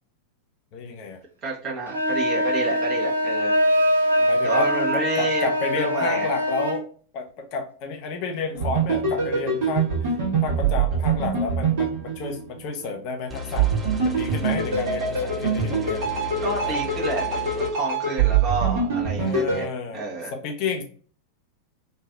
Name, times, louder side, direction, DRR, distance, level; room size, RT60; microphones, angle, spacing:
voice 1, 0.7-1.2 4.2-6.8 7.1-10.1 10.4-13.7 14.0-16.1 16.6-16.8 19.1-20.8, left 4 dB, 45° left, 3 dB, 0.5 m, -31 dB
voice 2, 1.4-3.5 4.4-5.5 5.7-6.3 16.4-19.7 19.9-20.3, right 3 dB, 35° right, -3 dB, 1.1 m, -30 dB
sound 1, 1.9-6.8, equal, 80° right, 0.5 m, -23 dB
sound 2, 8.5-12.8 13.6-19.6, right 5 dB, 50° right, 1.3 m, -24 dB
sound 3, 13.3-17.7, left 4 dB, 15° right, 0.6 m, -35 dB
3.1 x 2.5 x 2.3 m, 0.43 s
figure-of-eight pair, 90°, 0 cm